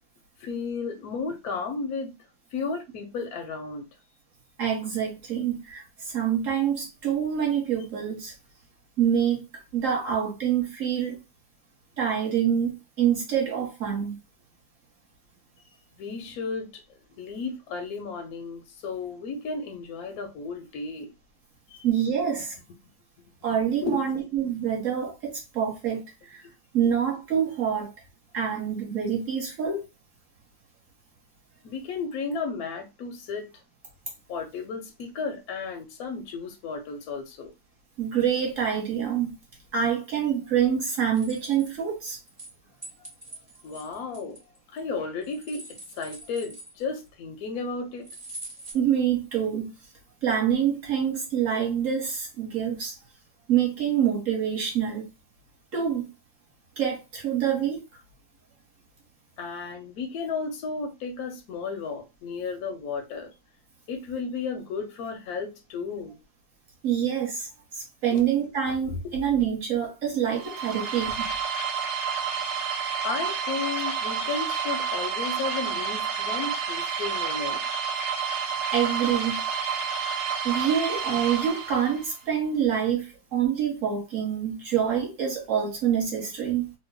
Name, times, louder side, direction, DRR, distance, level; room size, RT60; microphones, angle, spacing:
voice 1, 0.4-2.1 2.5-3.8 16.0-16.8 17.2-21.1 21.7-21.8 23.8-24.0 31.6-33.5 34.3-37.5 43.6-44.4 44.7-48.1 59.4-63.3 63.9-66.2 68.1-68.2 69.0-69.1 73.0-77.6, left 4 dB, 70° left, 0.9 m, -33 dB
voice 2, 4.6-8.3 9.0-9.4 9.7-11.2 12.0-14.2 21.8-22.6 23.4-26.4 26.7-27.9 28.3-29.8 38.0-39.3 39.7-42.2 48.7-49.7 50.2-53.0 53.5-55.1 55.7-56.1 56.8-57.8 66.8-67.5 67.8-71.3 78.7-79.4 80.4-86.7, right 8 dB, 50° right, 1.3 m, -26 dB
sound 1, 41.1-42.5 42.8-44.8 45.2-47.1 48.0-48.7, right 2 dB, 30° right, 0.4 m, -43 dB
sound 2, 70.3-82.1, right 6 dB, 70° right, 1.2 m, -30 dB
3.0 x 2.2 x 3.3 m
omnidirectional pair, 2.0 m